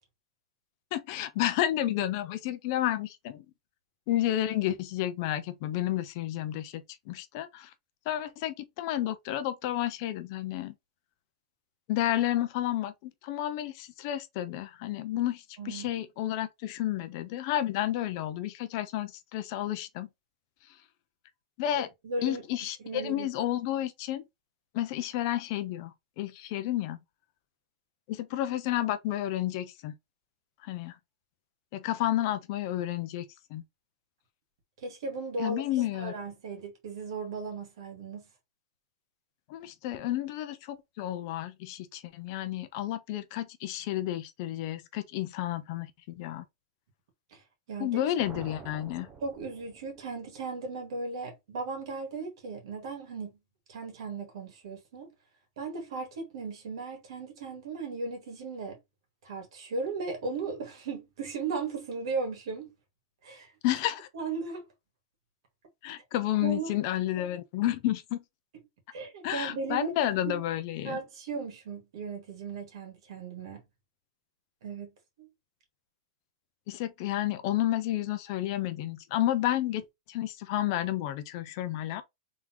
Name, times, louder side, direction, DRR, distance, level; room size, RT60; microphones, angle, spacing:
voice 1, 0.9-3.4 4.1-7.7 8.1-10.7 11.9-20.1 21.6-21.9 22.2-24.2 24.7-25.9 26.2-27.0 28.1-29.9 30.6-30.9 31.7-33.6 35.4-36.1 39.5-45.9 46.1-46.4 47.8-49.1 63.6-64.1 65.8-68.2 69.2-71.0 76.7-79.8 80.1-82.0, left 13 dB, 35° left, 0.6 m, -31 dB
voice 2, 15.6-15.9 21.7-23.3 34.8-38.3 47.3-47.4 47.7-48.0 49.2-53.3 53.7-55.1 55.6-58.8 59.2-62.7 63.2-63.5 64.1-64.7 66.4-66.7 68.9-69.9 70.2-70.4 70.8-73.6 74.6-74.9 75.2-75.3, right 4 dB, 60° right, 2.0 m, -36 dB
sound 1, 48.2-50.4, right 5 dB, 15° right, 0.6 m, -48 dB
3.8 x 3.6 x 3.0 m
supercardioid pair, 175°, 3 cm